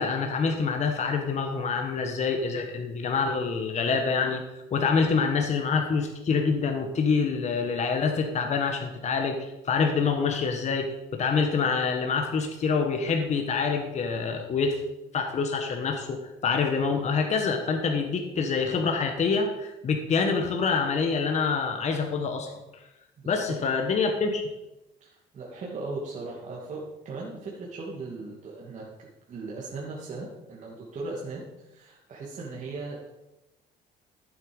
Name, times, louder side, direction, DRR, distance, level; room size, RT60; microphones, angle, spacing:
voice 1, 0.0-14.8 15.1-22.8 23.3-24.4, left 5 dB, 40° left, 4 dB, 1.5 m, -26 dB
voice 2, 25.0-28.8 29.3-33.0, right 3 dB, 45° right, -4 dB, 2.6 m, -38 dB
14.0 x 8.3 x 5.4 m, 0.97 s
cardioid pair, 110°, 17 cm